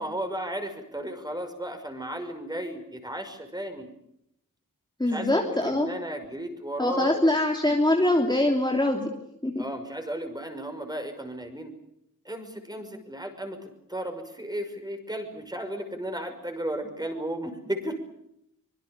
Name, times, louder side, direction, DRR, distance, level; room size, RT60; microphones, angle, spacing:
voice 1, 0.0-3.9 5.1-7.3 9.6-11.7 12.2-18.0, right 1 dB, 10° right, 6 dB, 5.7 m, -34 dB
voice 2, 5.0-5.9 6.8-9.1 9.4-9.6, left 1 dB, 15° left, 1 dB, 3.3 m, -23 dB
25.0 x 23.5 x 6.8 m, 0.78 s
wide cardioid pair, 105°, 33 cm